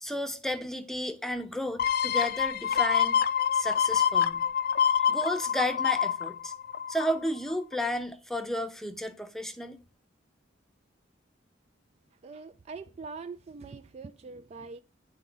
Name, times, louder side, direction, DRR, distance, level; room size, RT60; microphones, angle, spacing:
voice 1, 0.0-3.2 3.5-4.4 4.9-6.5 6.9-9.8, equal, ahead, 0.7 m, -33 dB
sound 1, 1.8-7.3 7.7-7.8, left 8 dB, 55° left, 0.4 m, -26 dB
voice 2, 12.2-14.8, right 4 dB, 35° right, 0.3 m, -43 dB
9.6 x 3.8 x 3.8 m
head